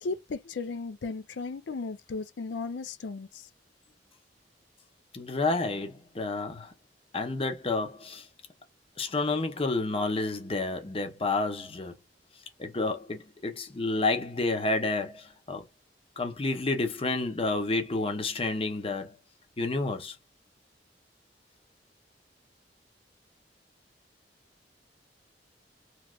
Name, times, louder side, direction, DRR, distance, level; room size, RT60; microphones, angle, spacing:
voice 1, 0.0-3.3, left 4 dB, 90° left, 0.5 m, -35 dB
voice 2, 5.1-6.7 7.1-8.2 9.0-11.9 12.6-15.6 16.2-19.2 19.6-20.2, left 3 dB, 35° left, 0.8 m, -30 dB
3.0 x 2.9 x 2.4 m
head